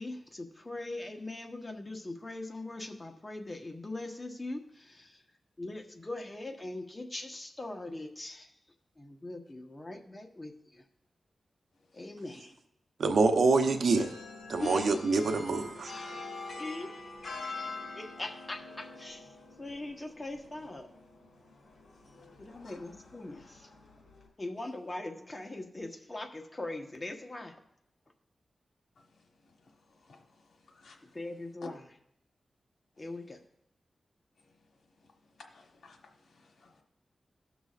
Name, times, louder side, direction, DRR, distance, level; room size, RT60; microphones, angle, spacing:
voice 1, 0.0-5.2 5.6-8.5 9.0-10.8 11.9-12.5 14.6-14.8 16.6-16.9 18.0-19.3 19.6-20.9 22.4-23.7 24.4-27.6 31.1-31.8 33.0-33.4, left 2 dB, 30° left, 4 dB, 1.1 m, -41 dB
voice 2, 13.0-14.1 14.5-15.9, right 3 dB, 85° right, 6 dB, 0.8 m, -26 dB
sound 1, 14.0-24.3, left 3 dB, 70° left, 2.5 m, -45 dB
voice 3, 35.5-36.0 36.3-36.8, left 3 dB, 85° left, 2 dB, 1.2 m, -51 dB
18.0 x 6.1 x 2.4 m, 0.80 s
cardioid pair, 60°, 0 cm